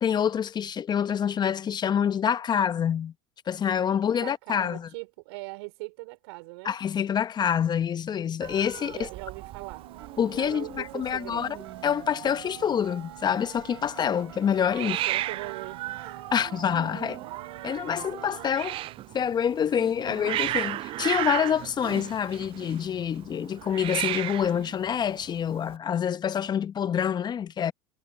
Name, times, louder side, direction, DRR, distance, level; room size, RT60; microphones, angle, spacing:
voice 1, 0.0-3.1 3.5-4.9 6.6-9.1 10.2-11.6 11.8-15.0 16.3-17.2 17.6-18.7 19.1-27.7, left 8 dB, 30° left, 1.0 m, -27 dB
voice 2, 4.2-6.8 8.8-9.8 10.4-11.5 14.8-16.2, right 27 dB, 65° right, 4.3 m, -41 dB
Hiss, 8.4-25.8, right 15 dB, 40° right, 0.4 m, -36 dB
sound 1, 9.4-19.4, right 11 dB, 80° right, 3.7 m, -46 dB
hypercardioid pair, 85°, 14 cm